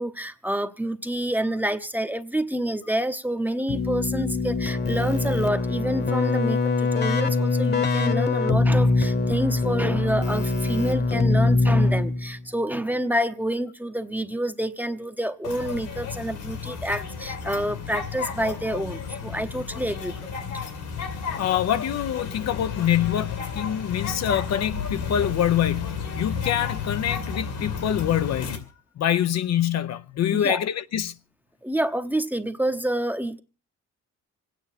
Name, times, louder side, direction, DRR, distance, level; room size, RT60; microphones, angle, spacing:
voice 1, 0.0-20.1 30.3-30.6 31.6-33.4, right 1 dB, 5° right, 0.9 m, -28 dB
Keyboard (musical), 3.7-12.4, left 3 dB, 35° left, 1.2 m, -23 dB
sound 1, 15.4-28.6, left 6 dB, 80° left, 2.7 m, -32 dB
voice 2, 21.3-28.6 29.0-31.1, left 10 dB, 60° left, 0.7 m, -25 dB
26.5 x 9.3 x 4.2 m
cardioid pair, 90°, 30 cm